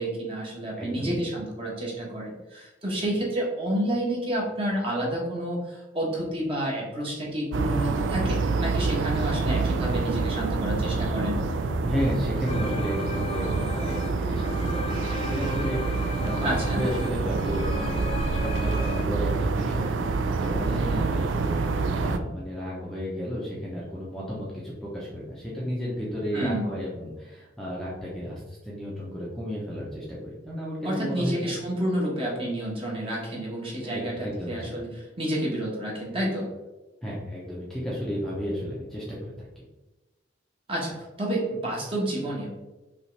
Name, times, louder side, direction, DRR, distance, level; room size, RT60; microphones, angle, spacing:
voice 1, 0.0-11.4 16.4-16.8 26.3-26.7 30.8-36.5 40.7-42.5, right 1 dB, 30° right, -4 dB, 1.2 m, -29 dB
voice 2, 0.8-1.3 11.8-31.5 33.8-34.7 37.0-39.6, equal, ahead, -6 dB, 0.7 m, -33 dB
sound 1, 7.5-22.2, right 4 dB, 85° right, 0.4 m, -27 dB
sound 2, 12.5-19.0, left 2 dB, 30° left, 0.3 m, -36 dB
5.5 x 2.5 x 3.2 m, 1.1 s
head